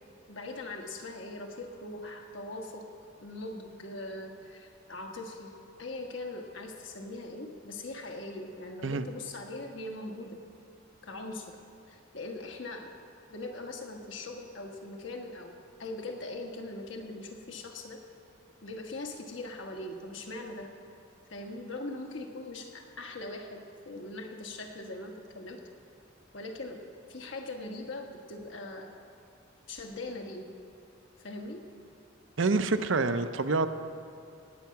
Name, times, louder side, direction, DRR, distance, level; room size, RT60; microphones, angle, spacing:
voice 1, 0.3-2.9 3.2-10.4 11.0-11.6 11.9-12.9 13.3-18.0 18.6-20.7 21.3-25.6 26.3-26.8 27.1-28.9 29.7-30.5 31.2-31.6, left 2 dB, 70° left, 2 dB, 1.5 m, -41 dB
voice 2, 32.4-33.7, right 3 dB, 70° right, 10 dB, 0.7 m, -27 dB
18.5 x 8.4 x 5.8 m, 2.6 s
head